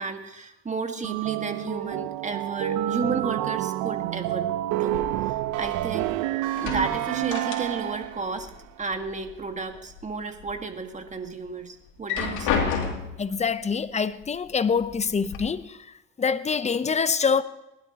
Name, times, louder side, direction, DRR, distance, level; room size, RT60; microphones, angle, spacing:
voice 1, 0.0-5.0 5.5-6.1 6.6-8.5 8.8-12.7, right 4 dB, 25° right, 1.8 m, -33 dB
sound 1, 1.0-8.3, right 14 dB, 75° right, 0.7 m, -28 dB
sound 2, 4.9-6.2 6.5-8.1 8.3-9.3 9.7-10.5 11.0-11.1 11.9-13.3 14.2-14.3 14.7-15.4, left 6 dB, 75° left, 2.8 m, -31 dB
voice 2, 13.2-15.8 16.2-17.4, left 5 dB, 20° left, 0.8 m, -25 dB
20.0 x 12.0 x 3.0 m
supercardioid pair, 85°, 30 cm